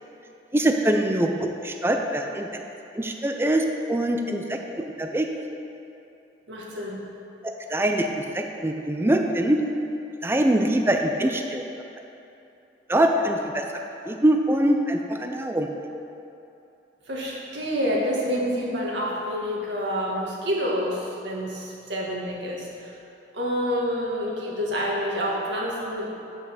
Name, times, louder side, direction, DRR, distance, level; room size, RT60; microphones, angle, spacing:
voice 1, 0.5-2.6 2.9-5.3 7.4-9.6 10.2-11.7 12.9-13.6 14.1-15.7, right 1 dB, 15° right, 3 dB, 0.5 m, -23 dB
voice 2, 6.5-7.0 17.1-22.7 23.3-26.0, equal, 80° right, -4 dB, 1.8 m, -28 dB
8.5 x 5.3 x 6.7 m, 2.8 s
head